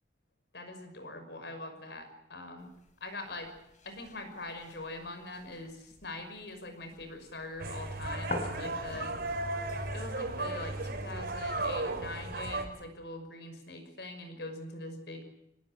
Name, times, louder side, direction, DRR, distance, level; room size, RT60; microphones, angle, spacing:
voice 1, 0.5-2.7 3.0-3.5 3.8-9.2 9.9-15.2, left 2 dB, 70° left, 8 dB, 5.8 m, -43 dB
sound 1, 2.6-10.4, left 2 dB, 45° left, 4.5 m, -46 dB
sound 2, 7.6-12.7, right 2 dB, 65° right, 4.3 m, -35 dB
26.5 x 19.0 x 8.9 m, 0.84 s
head